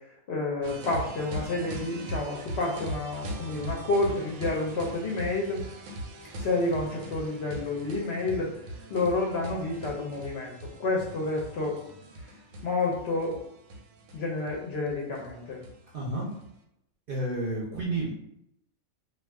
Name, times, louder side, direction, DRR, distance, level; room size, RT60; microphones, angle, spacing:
voice 1, 0.3-5.6 6.4-8.5 8.9-11.8 12.6-13.4 14.1-15.6, left 2 dB, 65° left, -2 dB, 0.7 m, -29 dB
sound 1, 0.6-16.5, right 1 dB, 85° right, 1.0 m, -40 dB
voice 2, 15.9-16.3 17.1-18.1, right 2 dB, 55° right, -4 dB, 0.6 m, -30 dB
2.3 x 2.3 x 3.4 m, 0.78 s
omnidirectional pair, 1.4 m